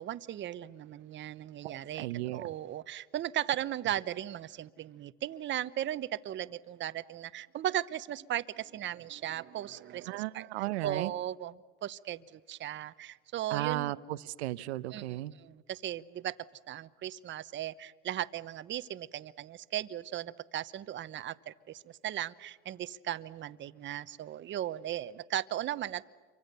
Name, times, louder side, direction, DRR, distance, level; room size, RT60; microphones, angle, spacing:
voice 1, 0.0-10.5 10.8-11.5 11.8-13.9 14.9-16.4 16.7-26.1, right 12 dB, 35° right, 15 dB, 0.9 m, -37 dB
voice 2, 1.6-2.5 10.1-11.1 13.5-15.3, right 16 dB, 90° right, 16 dB, 0.9 m, -35 dB
29.0 x 24.5 x 6.9 m, 1.5 s
supercardioid pair, 110°, 32 cm